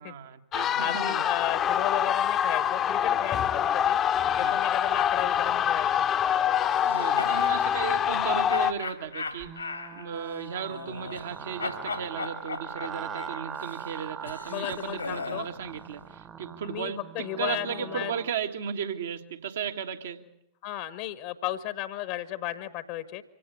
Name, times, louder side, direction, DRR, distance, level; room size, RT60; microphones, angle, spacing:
voice 1, 0.0-1.2 4.4-4.6 6.8-9.5 9.9-17.0 17.4-20.2, right 7 dB, 60° right, 6 dB, 1.7 m, -35 dB
sound 1, 0.5-8.7, left 9 dB, 30° left, 1.0 m, -25 dB
voice 2, 0.8-4.0 4.4-6.1 14.5-15.5 16.6-18.1 20.6-23.2, left 13 dB, 50° left, 13 dB, 1.3 m, -34 dB
sound 2, 6.7-7.6 8.5-11.3 11.6-15.5, left 4 dB, 80° left, 2.6 m, -38 dB
sound 3, 9.4-18.3, right 7 dB, 25° right, 1.2 m, -42 dB
25.5 x 17.0 x 8.4 m, 0.84 s
figure-of-eight pair, 90°, 0 cm